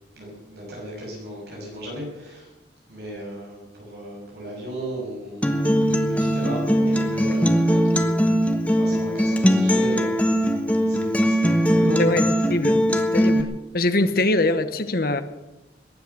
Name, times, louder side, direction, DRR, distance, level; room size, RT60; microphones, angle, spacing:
voice 1, 0.2-2.5 2.9-5.4 6.0-8.3 8.8-10.1 10.9-12.0, equal, 65° right, 6.4 m, -35 dB
Acoustic guitar, 5.4-13.4, equal, 10° left, 1.3 m, -20 dB
voice 2, 12.0-12.8 13.1-15.2, left 2 dB, 55° left, 1.1 m, -23 dB
21.5 x 9.6 x 6.8 m
head